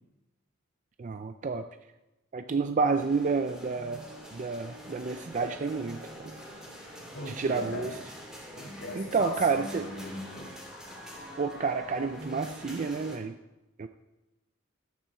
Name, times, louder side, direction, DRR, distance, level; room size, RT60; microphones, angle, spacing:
voice 1, 1.0-1.6 2.3-4.0 4.3-6.3 7.3-7.9 8.9-9.9 11.4-13.4 13.8-13.9, right 4 dB, 40° right, 8 dB, 0.4 m, -29 dB
sound 1, 2.9-13.2, equal, 5° right, 3.1 m, -45 dB
voice 2, 7.1-8.0 8.5-10.6, left 1 dB, 55° left, -4 dB, 1.9 m, -39 dB
13.5 x 9.3 x 4.4 m, 1.0 s
head